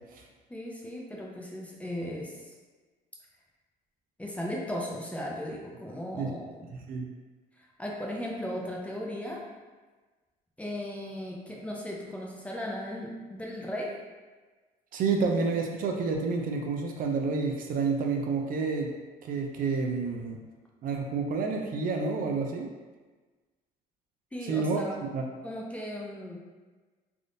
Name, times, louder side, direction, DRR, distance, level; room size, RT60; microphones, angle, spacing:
voice 1, 0.5-2.5 4.2-6.7 7.6-9.4 10.6-13.9 24.3-25.0 25.4-26.4, equal, 10° left, -3 dB, 0.5 m, -37 dB
voice 2, 6.7-7.1 14.9-18.9 19.2-20.4 20.8-22.7 24.5-24.8 25.1-25.2, right 4 dB, 55° right, 2 dB, 0.4 m, -29 dB
3.4 x 2.5 x 2.5 m, 1.3 s
cardioid pair, 110°, 17 cm